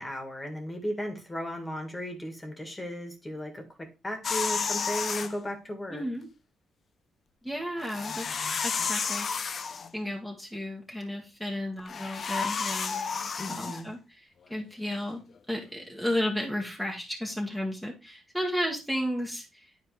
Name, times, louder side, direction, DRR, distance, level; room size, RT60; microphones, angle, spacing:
voice 1, 0.0-6.0 13.4-13.9, equal, 15° left, 1.8 m, -36 dB
sound 1, 4.2-5.3 7.8-9.9 11.8-13.8, left 5 dB, 45° left, 0.6 m, -31 dB
voice 2, 5.9-6.3 7.4-19.7, equal, ahead, 1.6 m, -34 dB
10.0 x 4.3 x 3.3 m
cardioid pair, 90°, 0 cm